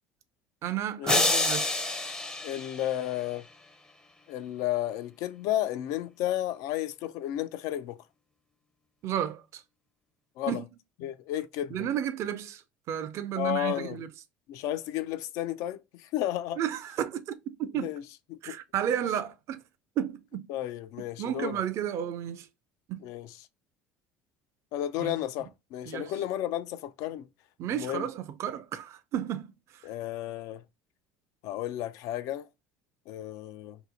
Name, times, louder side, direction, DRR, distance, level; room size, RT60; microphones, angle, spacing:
voice 1, 0.6-1.8 9.0-9.6 10.5-10.6 11.7-12.6 12.9-14.1 16.6-17.9 18.4-19.6 20.0-20.5 21.2-22.5 22.9-23.0 25.0-25.1 25.9-26.1 27.6-29.8, right 10 dB, 55° right, 0.4 m, -32 dB
sound 1, 1.1-3.4, left 2 dB, 15° left, 0.5 m, -28 dB
voice 2, 2.4-3.5 4.3-8.0 10.4-10.6 11.0-11.9 13.4-14.0 14.5-16.6 17.8-18.0 18.3-18.6 20.5-21.6 23.0-23.4 24.7-27.3 27.7-28.1 29.8-30.6 31.4-32.5 33.1-33.8, left 12 dB, 70° left, 0.4 m, -32 dB
2.8 x 2.0 x 3.9 m
supercardioid pair, 90°, 6 cm